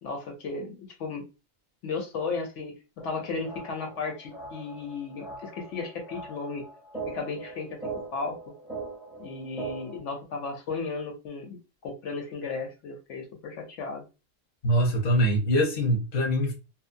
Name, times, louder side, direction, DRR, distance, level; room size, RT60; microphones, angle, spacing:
voice 1, 0.0-1.2 1.8-2.7 3.0-6.7 7.1-7.8 8.1-8.4 9.2-14.0, left 4 dB, 70° left, 0.9 m, -35 dB
sound 1, 3.0-10.0, right 3 dB, ahead, 0.7 m, -41 dB
voice 2, 14.6-16.5, equal, 40° left, 0.8 m, -23 dB
2.7 x 2.0 x 2.5 m
omnidirectional pair, 1.3 m